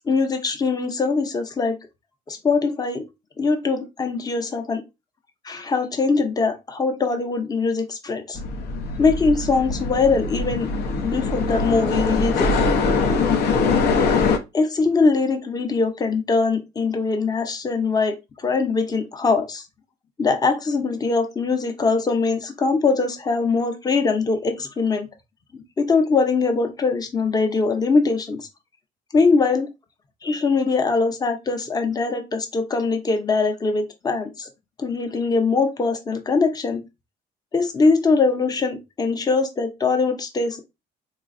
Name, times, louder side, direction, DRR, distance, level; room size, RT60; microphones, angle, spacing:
voice 1, 0.1-1.8 2.3-3.0 3.4-4.8 5.4-8.4 9.0-10.7 11.0-12.5 14.5-19.6 20.2-25.1 25.5-28.5 29.1-29.7 30.2-34.5 34.8-36.8 37.5-40.6, left 4 dB, 20° left, 6 dB, 0.6 m, -22 dB
sound 1, 8.3-14.4, left 4 dB, 70° left, 0.6 m, -22 dB
3.9 x 2.3 x 2.5 m, 0.23 s
cardioid pair, 110°, 17 cm